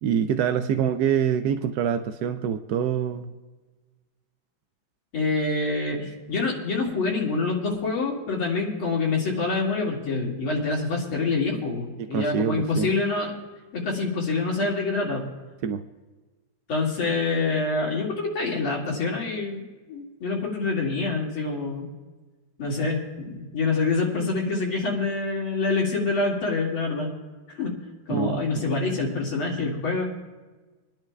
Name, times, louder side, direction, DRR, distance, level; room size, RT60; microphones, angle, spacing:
voice 1, 0.0-3.3 12.0-12.9 15.6-15.8 28.1-28.6, right 8 dB, 80° right, 8 dB, 0.8 m, -25 dB
voice 2, 5.1-13.3 13.7-15.2 16.7-19.6 19.9-21.9 22.6-27.1 27.5-27.8 28.1-30.1, left 3 dB, 85° left, -2 dB, 3.1 m, -26 dB
27.5 x 10.5 x 2.3 m, 1.3 s
omnidirectional pair, 2.2 m